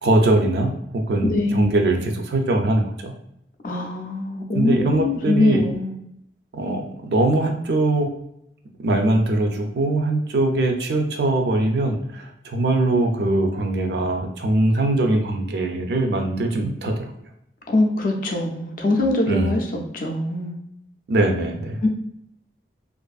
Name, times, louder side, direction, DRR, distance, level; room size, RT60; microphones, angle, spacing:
voice 1, 0.0-3.1 4.5-5.6 6.5-8.2 8.8-17.1 19.3-19.5 21.1-21.9, right 2 dB, 65° right, 3 dB, 0.4 m, -21 dB
voice 2, 1.2-1.8 3.6-5.9 17.7-20.5 21.8-21.9, left 2 dB, 50° left, 2 dB, 0.4 m, -23 dB
2.5 x 2.4 x 2.3 m, 0.77 s
head